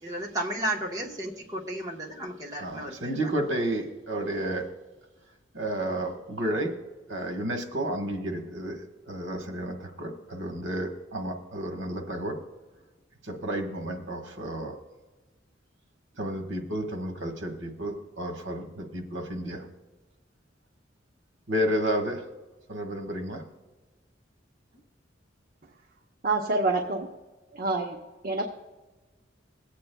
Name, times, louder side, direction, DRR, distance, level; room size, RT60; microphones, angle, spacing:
voice 1, 0.0-3.3, right 1 dB, 20° right, -2 dB, 1.1 m, -33 dB
voice 2, 2.6-4.6 5.5-6.7 7.1-12.4 13.2-14.8 16.2-19.7 21.5-22.2 22.7-23.4, right 1 dB, 80° right, 3 dB, 1.4 m, -31 dB
voice 3, 26.2-27.1 27.5-28.0 28.2-28.5, right 3 dB, 50° right, 1 dB, 0.8 m, -27 dB
22.0 x 8.5 x 2.2 m, 1.2 s
head